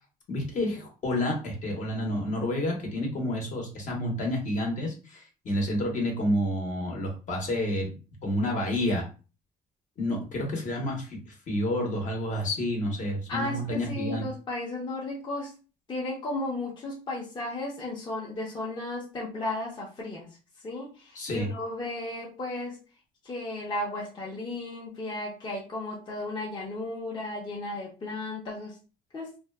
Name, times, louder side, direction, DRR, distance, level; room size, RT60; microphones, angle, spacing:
voice 1, 0.3-7.9 8.2-9.1 10.0-14.2 21.1-21.5, left 1 dB, 45° left, 1 dB, 1.0 m, -29 dB
voice 2, 13.3-15.5 15.9-20.3 20.6-22.8 23.2-28.8 29.1-29.3, left 2 dB, 30° left, -4 dB, 0.7 m, -34 dB
2.5 x 2.3 x 2.2 m, 0.34 s
cardioid pair, 110°, 17 cm